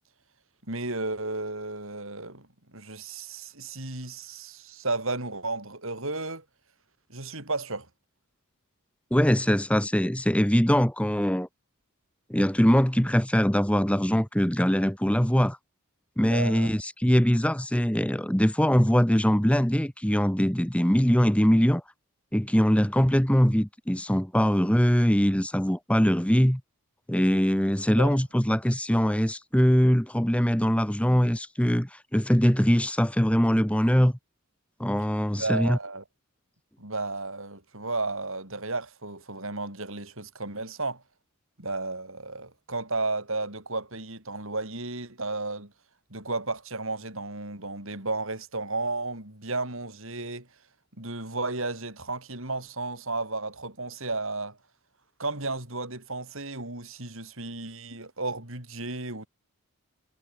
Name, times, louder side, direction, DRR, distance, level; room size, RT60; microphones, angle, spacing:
voice 1, 0.7-6.4 7.1-7.9 16.2-16.7 28.0-28.2 35.3-36.0 36.8-41.0 41.6-45.7 46.1-50.5 51.0-54.6 55.2-59.3, right 3 dB, 65° right, 6.2 m, -33 dB
voice 2, 9.1-11.5 12.3-15.6 16.2-21.8 22.3-26.6 27.1-34.2 34.8-35.8, equal, 5° left, 1.3 m, -22 dB
head